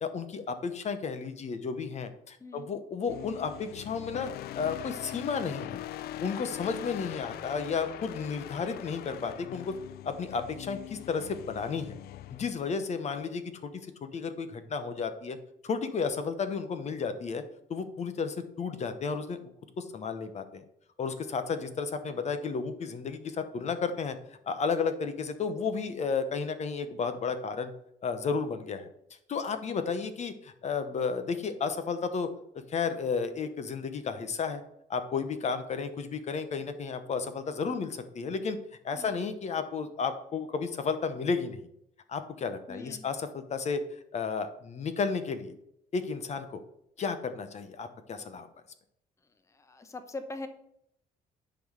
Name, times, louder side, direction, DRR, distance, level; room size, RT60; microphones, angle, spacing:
voice 1, 0.0-4.3 4.6-5.8 6.2-9.7 10.0-12.0 12.3-13.7 14.0-15.4 15.6-17.4 17.7-19.4 19.8-20.6 21.0-24.2 24.5-27.7 28.0-28.9 29.3-32.3 32.5-34.6 34.9-38.6 38.8-41.6 42.1-43.8 44.1-45.5 45.9-46.6 47.0-48.5, left 5 dB, 40° left, 9 dB, 0.9 m, -32 dB
sound 1, 3.1-13.4, left 13 dB, 65° left, 0.4 m, -42 dB
voice 2, 42.7-43.0 49.5-50.5, left 2 dB, 15° left, 8 dB, 0.9 m, -42 dB
10.0 x 4.0 x 6.4 m, 0.75 s
cardioid pair, 110°, 17 cm